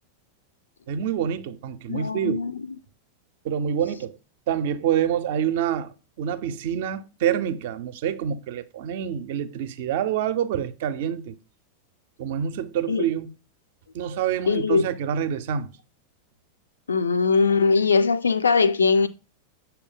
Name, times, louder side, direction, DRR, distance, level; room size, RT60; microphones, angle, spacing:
voice 1, 0.9-2.4 3.4-4.2 4.5-5.9 6.2-11.4 12.2-13.3 13.9-15.7, right 9 dB, 50° right, 0.4 m, -27 dB
voice 2, 1.9-2.6 12.9-13.1 14.5-14.8 16.9-19.1, left 4 dB, 75° left, 0.3 m, -21 dB
6.3 x 2.2 x 3.7 m
figure-of-eight pair, 90°, 0 cm